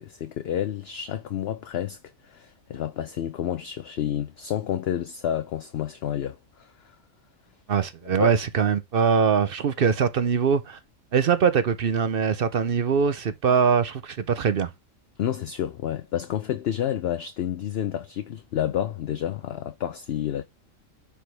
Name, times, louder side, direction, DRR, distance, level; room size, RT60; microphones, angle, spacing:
voice 1, 0.0-7.0 8.0-8.4 15.2-20.4, left 10 dB, 60° left, 0.7 m, -30 dB
voice 2, 7.7-10.8 11.1-14.7, right 6 dB, 55° right, 0.7 m, -22 dB
10.0 x 4.8 x 3.4 m
omnidirectional pair, 1.4 m